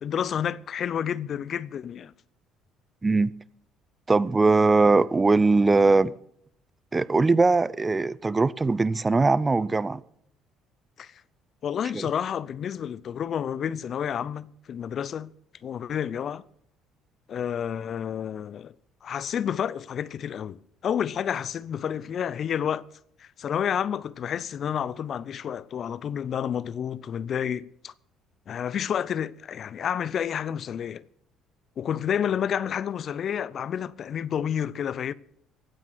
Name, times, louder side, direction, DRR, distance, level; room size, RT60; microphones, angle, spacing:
voice 1, 0.0-2.1 11.0-11.2 11.6-15.3 15.6-16.4 17.3-18.7 19.0-22.9 23.2-27.9 28.5-31.0 31.8-35.1, left 8 dB, 55° left, 0.5 m, -30 dB
voice 2, 4.1-6.1 6.9-10.0 11.9-12.1, right 3 dB, 25° right, 0.5 m, -21 dB
15.5 x 9.1 x 6.1 m
hypercardioid pair, 55°, 0 cm